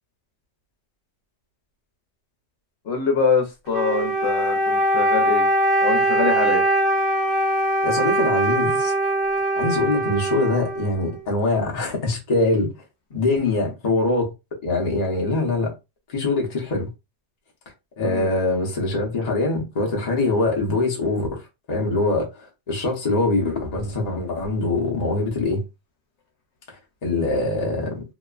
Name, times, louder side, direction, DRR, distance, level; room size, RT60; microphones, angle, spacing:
voice 1, 2.9-5.5 5.8-6.6 18.0-18.3, left 5 dB, 65° left, 1.0 m, -24 dB
Wind instrument woodwind instrument, 3.7-11.3, right 1 dB, 60° right, 0.7 m, -22 dB
voice 2, 7.8-8.9 9.6-12.7 13.1-14.3 14.6-15.7 16.1-16.9 18.0-25.6 26.7-28.0, left 2 dB, 40° left, 0.8 m, -23 dB
2.9 x 2.1 x 2.3 m
omnidirectional pair, 1.2 m